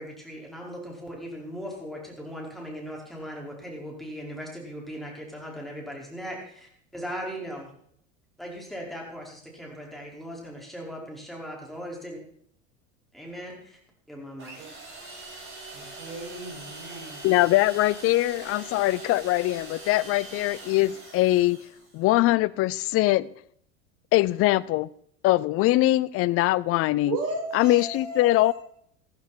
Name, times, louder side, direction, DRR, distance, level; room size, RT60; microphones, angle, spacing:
voice 1, 0.0-7.7 8.4-12.2 13.1-13.8 14.1-14.6, equal, ahead, -2 dB, 5.0 m, -38 dB
sound 1, 14.4-22.0, right 2 dB, 30° right, 7.4 m, -43 dB
voice 2, 15.7-17.2 27.1-28.5, right 2 dB, 50° right, 0 dB, 6.8 m, -35 dB
voice 3, 17.2-21.6 21.9-23.3 24.1-24.9 25.2-27.2 27.5-28.5, left 17 dB, 35° left, 21 dB, 0.5 m, -22 dB
14.0 x 13.5 x 4.4 m, 0.68 s
hypercardioid pair, 80°, 39 cm